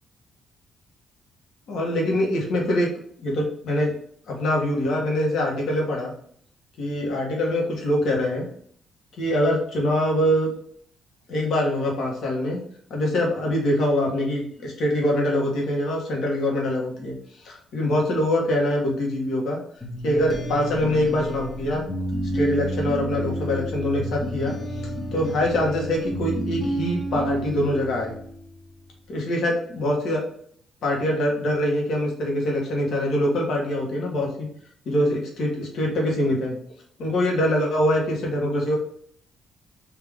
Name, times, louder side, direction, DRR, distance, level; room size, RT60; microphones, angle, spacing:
voice 1, 1.7-2.9 3.2-3.9 4.3-6.1 6.8-8.5 9.2-10.5 11.3-12.6 12.9-19.6 20.0-21.8 22.3-28.1 29.1-30.2 30.8-34.5 34.8-36.6 37.0-38.8, left 1 dB, 70° left, -1 dB, 1.4 m, -24 dB
sound 1, 19.8-28.5, right 1 dB, 20° left, 0.9 m, -30 dB
3.6 x 2.8 x 3.5 m, 0.62 s
cardioid pair, 90°, 0 cm